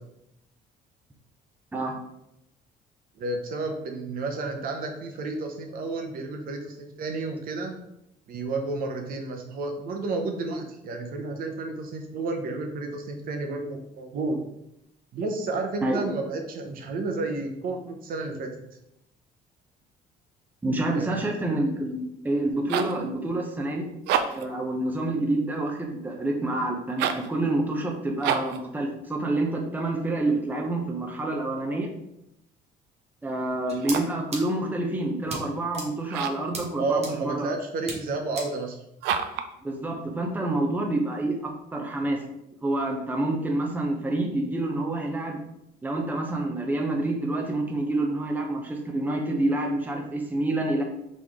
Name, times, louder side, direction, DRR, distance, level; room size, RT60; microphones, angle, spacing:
voice 1, 3.2-7.7 8.3-14.4 15.1-18.5 20.9-21.3 36.8-38.8, right 3 dB, 60° right, 3 dB, 0.8 m, -31 dB
voice 2, 20.6-23.9 24.3-31.9 33.2-37.5 39.6-42.2 42.6-45.4 45.8-50.8, right 2 dB, 10° right, 1 dB, 0.7 m, -28 dB
sound 1, 22.4-23.0 23.9-24.6 26.9-27.3 28.2-28.6 33.7-34.2 36.1-36.5 39.0-39.5, right 8 dB, 90° right, 0.4 m, -28 dB
sound 2, 33.7-34.0 34.3-34.4 35.3-35.4 35.7-35.9 36.5-36.6 37.0-37.1 37.9-38.0 38.4-38.5, right 3 dB, 40° right, 1.2 m, -33 dB
4.1 x 3.1 x 3.5 m, 0.82 s
cardioid pair, 110°, 17 cm